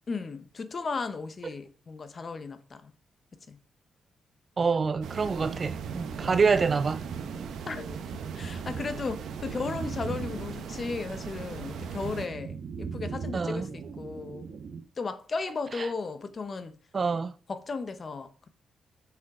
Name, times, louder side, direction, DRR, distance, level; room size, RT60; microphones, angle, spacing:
voice 1, 0.1-2.9 3.5-3.6 6.2-6.6 7.7-8.0 8.3-13.7 14.0-14.5 15.0-16.8 17.5-18.5, left 4 dB, 30° left, 0.9 m, -35 dB
voice 2, 4.6-7.0 13.3-13.7 16.9-17.3, right 5 dB, 30° right, 0.4 m, -26 dB
sound 1, 4.8-14.8, right 5 dB, 50° right, 0.9 m, -39 dB
sound 2, 5.0-12.3, right 6 dB, 85° right, 1.0 m, -40 dB
7.1 x 6.3 x 4.9 m
wide cardioid pair, 160°, 0 cm